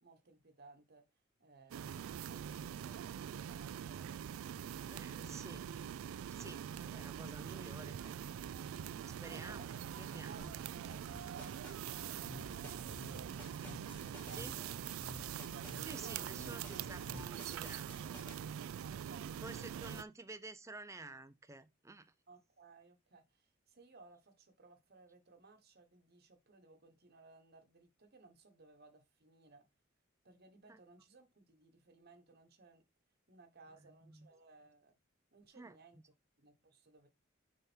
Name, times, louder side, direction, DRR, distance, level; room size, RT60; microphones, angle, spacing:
voice 1, 0.0-1.0 1.4-4.4 8.9-9.9 10.2-15.7 16.0-16.8 18.8-20.0 22.3-29.6 30.2-32.8 33.3-34.9 35.3-36.0 36.4-37.1, right 3 dB, 50° right, 1.1 m, -61 dB
sound 1, 1.7-20.0, right 9 dB, 90° right, 0.3 m, -44 dB
voice 2, 4.9-5.6 6.3-8.3 9.1-9.7 10.0-10.5 14.3-14.5 15.8-18.2 19.4-22.1 30.7-30.8 34.0-34.3 35.6-35.8, right 3 dB, 15° right, 0.5 m, -51 dB
sound 2, 10.4-18.4, left 1 dB, 10° left, 2.3 m, -55 dB
sound 3, 12.1-17.4, left 2 dB, 60° left, 0.7 m, -54 dB
6.8 x 3.5 x 4.3 m
head